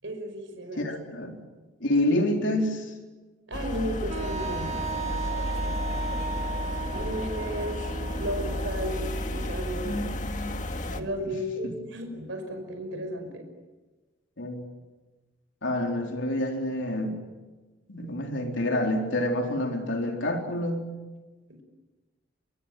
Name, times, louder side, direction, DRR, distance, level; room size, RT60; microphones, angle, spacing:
voice 1, 0.0-0.9 3.5-4.7 6.9-7.9 8.2-10.1 10.9-13.4, equal, 75° right, 5 dB, 5.6 m, -34 dB
voice 2, 0.8-1.4 1.8-2.9 9.8-10.5 14.4-14.6 15.6-17.2 17.9-20.9, left 1 dB, 70° left, 2 dB, 4.0 m, -28 dB
sound 1, 3.5-11.0, left 1 dB, 40° left, 1.9 m, -32 dB
Wind instrument woodwind instrument, 4.1-9.9, right 4 dB, 40° right, 1.8 m, -36 dB
25.0 x 24.5 x 9.1 m, 1.2 s
head